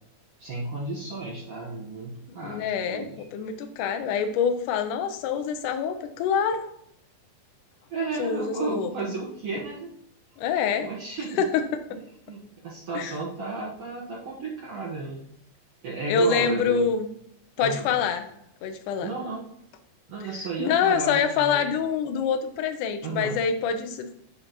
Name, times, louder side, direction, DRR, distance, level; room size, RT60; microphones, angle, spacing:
voice 1, 0.4-3.2 7.9-9.9 10.8-11.4 11.9-12.0 12.3-15.3 15.8-16.8 17.6-17.9 19.0-19.4 20.1-21.6 23.0-23.4, right 3 dB, 65° right, -3 dB, 1.6 m, -33 dB
voice 2, 2.4-6.7 8.2-8.9 10.4-10.9 11.4-11.8 13.0-13.2 16.1-17.1 17.6-18.3 18.6-19.1 20.3-24.1, left 6 dB, 75° left, 7 dB, 1.9 m, -26 dB
11.5 x 3.9 x 3.0 m, 0.72 s
omnidirectional pair, 4.4 m